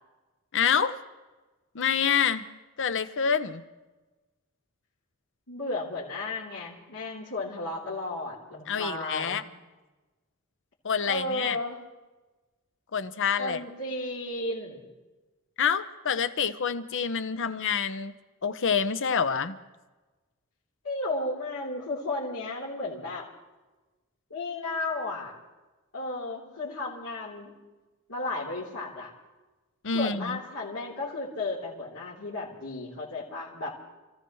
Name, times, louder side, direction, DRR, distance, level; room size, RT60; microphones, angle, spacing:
voice 1, 0.5-0.9 1.7-2.4 2.8-3.6 8.7-9.4 10.8-11.6 12.9-13.6 15.6-18.1 18.4-19.6 29.8-30.4, left 7 dB, 60° left, 11 dB, 0.8 m, -27 dB
voice 2, 5.5-9.4 11.1-11.8 13.4-14.8 20.8-23.3 24.3-25.3 25.9-27.5 28.1-29.1 29.9-33.7, left 2 dB, 85° left, -9 dB, 3.7 m, -34 dB
29.5 x 15.5 x 3.2 m, 1.2 s
head